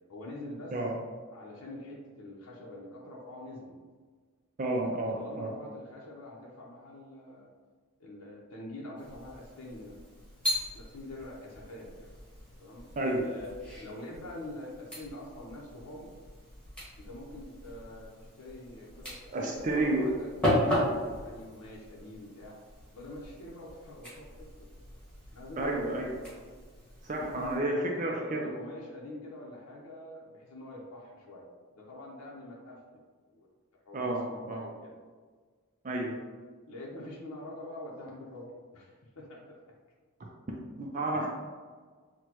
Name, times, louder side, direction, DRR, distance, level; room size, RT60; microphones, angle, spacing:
voice 1, 0.1-0.8 1.3-3.8 4.9-7.5 8.0-10.0 10.6-12.1 12.6-12.9 13.1-16.1 17.0-22.6 22.9-24.7 25.3-25.8 27.2-31.4 31.7-33.0 33.3-33.5 33.9-34.9 36.7-39.6, left 1 dB, 80° left, -4 dB, 0.7 m, -45 dB
voice 2, 4.6-5.5 13.0-13.2 19.3-20.2 25.6-26.1 27.0-28.5 33.9-34.2 34.5-34.7 35.8-36.2 40.8-41.3, right 2 dB, 35° right, -1 dB, 0.4 m, -31 dB
sound 1, 9.0-27.6, left 1 dB, 5° left, 1.3 m, -37 dB
6.1 x 2.2 x 2.9 m, 1.5 s
head